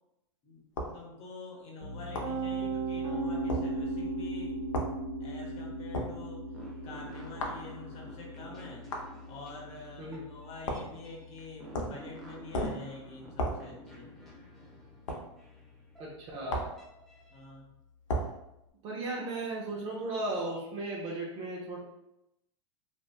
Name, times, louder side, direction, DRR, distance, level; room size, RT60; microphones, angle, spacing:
voice 1, 0.4-4.7 5.2-6.4 6.8-8.9 9.3-14.1 17.3-17.7, left 3 dB, 40° left, -1 dB, 0.8 m, -47 dB
sound 1, 0.8-1.0 2.1-2.4 3.5-3.7 4.7-4.9 5.9-6.2 7.4-7.6 8.9-9.1 10.6-11.0 11.7-12.0 12.5-12.9 13.4-13.6 15.1-15.2 16.5-16.8 18.1-18.3, equal, 85° left, 0.5 m, -33 dB
Piano, 1.8-13.7, right 2 dB, 75° right, 0.7 m, -38 dB
sound 2, 6.5-17.4, right 1 dB, ahead, 0.6 m, -53 dB
voice 2, 16.0-16.6 18.8-21.8, right 2 dB, 40° right, -4 dB, 0.6 m, -36 dB
2.5 x 2.2 x 2.3 m, 0.87 s
hypercardioid pair, 110°, 16 cm